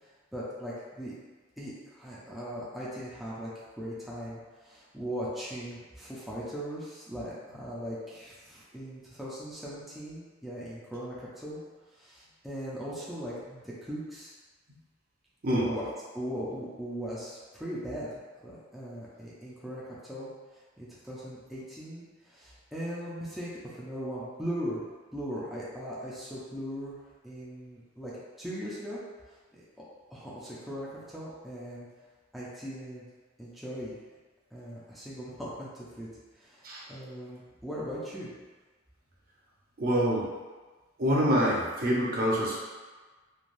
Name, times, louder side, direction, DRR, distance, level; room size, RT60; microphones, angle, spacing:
voice 1, 0.3-1.1 1.6-11.6 12.0-14.3 15.5-15.9 16.1-20.3 20.8-24.8 25.1-27.0 27.2-28.1 28.4-29.0 29.8-29.9 30.1-31.9 32.3-33.1 33.4-33.9 34.5-36.1 36.4-38.3, equal, ahead, -9 dB, 0.5 m, -39 dB
voice 2, 39.8-40.3 41.0-42.6, equal, 50° right, -5 dB, 0.6 m, -26 dB
3.2 x 2.2 x 2.5 m, 1.3 s
head